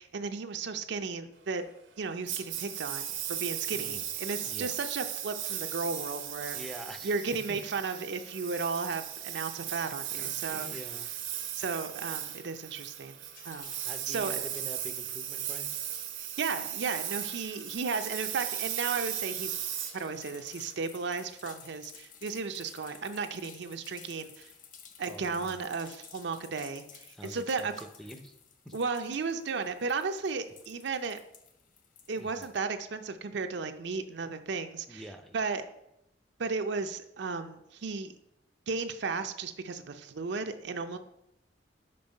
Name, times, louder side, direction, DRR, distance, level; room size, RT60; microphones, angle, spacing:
voice 1, 0.0-1.6 2.0-6.6 7.0-10.7 11.5-13.2 13.4-13.8 14.1-14.4 16.2-19.6 19.9-24.5 25.0-27.7 28.7-31.2 32.1-35.0 35.3-35.7 36.4-38.1 38.7-41.0, right 4 dB, 65° right, 8 dB, 0.5 m, -34 dB
Engine, 2.3-20.7, right 11 dB, 85° right, 0.9 m, -37 dB
voice 2, 3.7-4.1 4.4-4.8 6.5-7.1 7.5-7.6 10.1-11.1 13.8-15.7 25.1-25.6 27.1-28.3 28.6-28.7 32.1-32.5 34.9-35.4, equal, ahead, 6 dB, 0.5 m, -46 dB
sound 1, 13.3-32.6, left 7 dB, 45° left, 0.6 m, -54 dB
5.4 x 5.1 x 5.3 m, 0.81 s
head